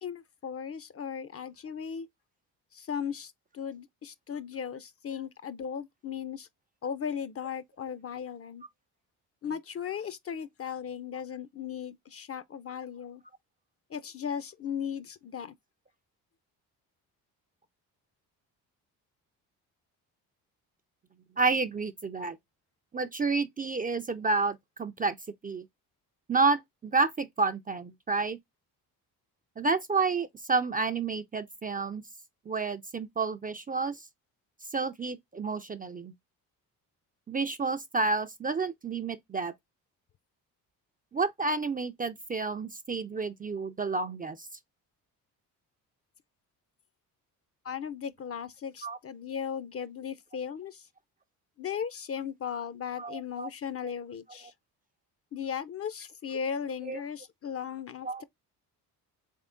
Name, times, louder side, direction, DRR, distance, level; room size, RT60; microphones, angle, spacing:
voice 1, 0.0-2.1 2.7-6.5 6.8-8.6 9.4-13.2 13.9-15.5 47.6-50.8 51.6-54.5 55.3-58.2, left 7 dB, 35° left, 0.5 m, -37 dB
voice 2, 21.4-22.4 22.9-25.2 25.4-25.6 26.3-28.4 29.6-32.0 32.5-34.1 34.7-36.1 37.3-39.5 41.1-44.5 48.8-49.0 53.0-53.5 56.8-57.0 58.0-58.2, right 4 dB, 20° right, 0.4 m, -30 dB
3.6 x 3.5 x 3.7 m
supercardioid pair, 70°, 40 cm